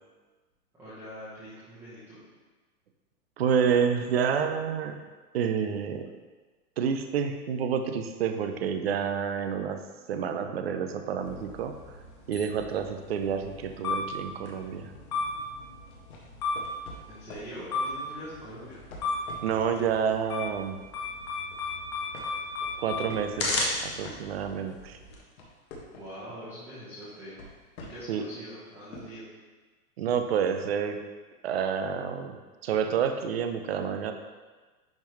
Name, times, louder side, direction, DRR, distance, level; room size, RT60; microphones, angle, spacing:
voice 1, 0.8-2.2 17.1-18.8 25.9-27.4 27.9-29.3, equal, 5° right, -14 dB, 1.0 m, -43 dB
voice 2, 3.4-5.0 5.3-6.1 6.8-9.8 10.1-11.8 12.3-14.9 19.4-20.8 22.8-23.5 23.8-25.0 28.1-28.2 30.0-31.0 31.4-34.1, right 7 dB, 45° right, 7 dB, 0.5 m, -29 dB
sound 1, 11.2-25.1, left 3 dB, 20° left, 0.5 m, -35 dB
sound 2, 15.9-17.6 18.6-20.0 20.4-20.7 21.1-21.7 22.1-24.7 25.1-26.3 27.0-28.2 28.9-29.0, left 2 dB, 70° left, 1.7 m, -46 dB
10.5 x 3.6 x 3.1 m, 1.3 s
hypercardioid pair, 165°, 45 cm